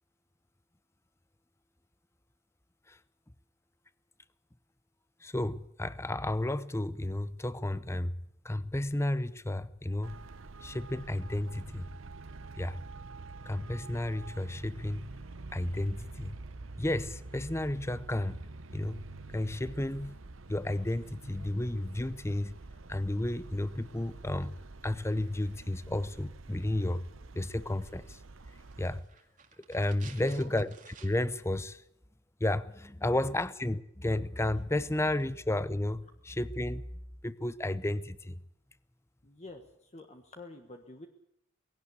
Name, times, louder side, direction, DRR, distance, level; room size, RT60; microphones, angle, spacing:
voice 1, 5.2-8.2 8.4-10.1 10.6-11.9 12.6-12.8 13.4-15.1 15.5-16.4 16.8-18.4 18.7-19.0 19.3-20.2 20.5-22.6 22.9-24.6 24.8-27.0 27.3-28.2 28.8-29.0 29.7-30.7 31.0-31.8 32.4-36.8 37.2-38.4, left 1 dB, 15° left, 16 dB, 0.7 m, -32 dB
Traffic noise roadway noise, 10.0-29.0, right 3 dB, 75° right, 0.9 m, -47 dB
sound 1, 28.6-31.4 31.7-31.8, right 6 dB, 40° right, 2.1 m, -54 dB
voice 2, 39.2-41.1, left 1 dB, 35° left, 5 dB, 1.4 m, -47 dB
19.0 x 17.5 x 8.3 m, 0.74 s
head